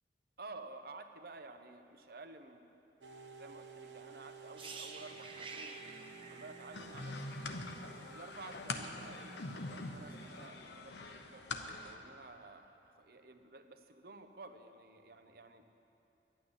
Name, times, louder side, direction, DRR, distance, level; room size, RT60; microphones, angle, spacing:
voice 1, 0.4-2.7 3.4-5.8 6.3-7.4 8.0-11.4 11.8-15.7, right 3 dB, 60° right, 8 dB, 0.8 m, -52 dB
sound 1, 3.0-10.5, right 6 dB, 90° right, 1.0 m, -55 dB
sound 2, 4.6-8.4 8.7-8.9, right 3 dB, 30° right, 0.9 m, -50 dB
sound 3, 6.7-11.9, left 2 dB, 70° left, 0.9 m, -44 dB
11.5 x 9.2 x 9.8 m, 2.9 s
head